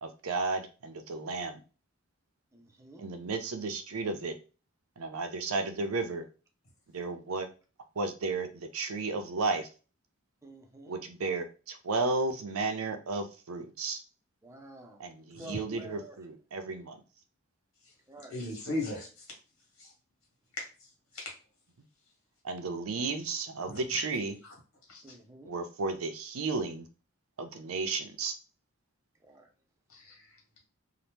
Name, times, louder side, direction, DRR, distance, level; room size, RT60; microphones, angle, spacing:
voice 1, 0.0-1.6 3.0-4.4 5.0-6.3 6.9-7.5 8.0-9.7 10.9-14.0 15.0-17.0 22.4-24.3 25.5-26.9 27.4-28.3, right 3 dB, 90° right, 8 dB, 0.5 m, -33 dB
voice 2, 2.5-3.0 10.4-11.0 14.4-15.0 15.4-16.2 18.1-18.4 25.0-25.5 29.2-29.5, right 2 dB, 15° right, 2 dB, 0.4 m, -49 dB
voice 3, 18.3-19.2 19.8-19.9 20.6-20.7 21.1-21.3 23.7-24.0 24.9-25.1 29.9-30.3, left 2 dB, 70° left, 0 dB, 1.3 m, -37 dB
2.7 x 2.1 x 3.3 m, 0.34 s
head